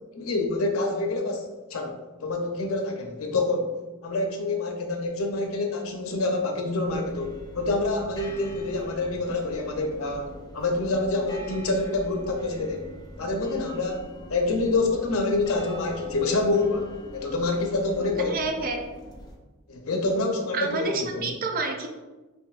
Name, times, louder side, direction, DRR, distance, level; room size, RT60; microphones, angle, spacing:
voice 1, 0.1-3.7 4.0-12.9 13.2-18.4 19.7-21.3, left 2 dB, 85° left, 2 dB, 0.7 m, -27 dB
sound 1, 6.8-19.4, equal, 20° left, 0.4 m, -44 dB
voice 2, 18.2-18.8 20.5-21.9, right 3 dB, 45° right, 3 dB, 0.5 m, -29 dB
5.4 x 2.6 x 2.4 m, 1.2 s
head